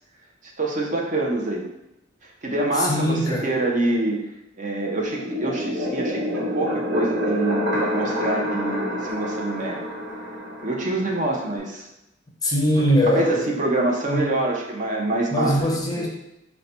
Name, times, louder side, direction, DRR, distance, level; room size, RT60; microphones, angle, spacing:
voice 1, 0.6-1.7 2.4-4.2 4.6-9.8 10.6-11.9 12.8-12.9 13.2-15.7 15.9-16.0, right 2 dB, 40° right, -1 dB, 0.6 m, -26 dB
voice 2, 2.8-3.5 12.4-13.5 14.1-14.4 15.3-16.1, equal, 20° left, -1 dB, 0.6 m, -21 dB
sound 1, 5.0-11.6, equal, 70° right, 1.3 m, -27 dB
3.9 x 2.2 x 4.2 m, 0.88 s
head